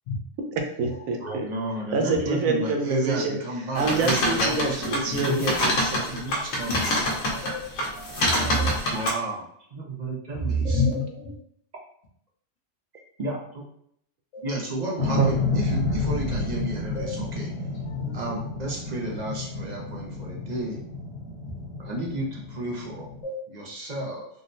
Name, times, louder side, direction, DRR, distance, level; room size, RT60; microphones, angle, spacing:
voice 1, 0.6-1.5 1.9-6.1 15.2-15.4, right 4 dB, 85° right, 3 dB, 1.0 m, -26 dB
voice 2, 1.2-5.6 6.0-7.2 8.9-9.4 9.7-10.8 13.2-13.6 14.4-17.5 18.1-20.8 21.8-23.1 23.5-24.3, right 1 dB, 50° right, -2 dB, 0.5 m, -32 dB
sound 1, 3.8-7.5 7.8-9.1, left 1 dB, 85° left, 1.2 m, -26 dB
voice 3, 7.3-8.7 10.4-11.3 14.3-14.4 15.0-15.5 16.9-17.3 17.9-18.1 23.2-23.3, left 1 dB, 65° left, -3 dB, 1.0 m, -29 dB
sound 2, 15.0-23.2, left 2 dB, 10° left, 0.7 m, -31 dB
3.7 x 2.1 x 2.5 m, 0.69 s
omnidirectional pair, 1.4 m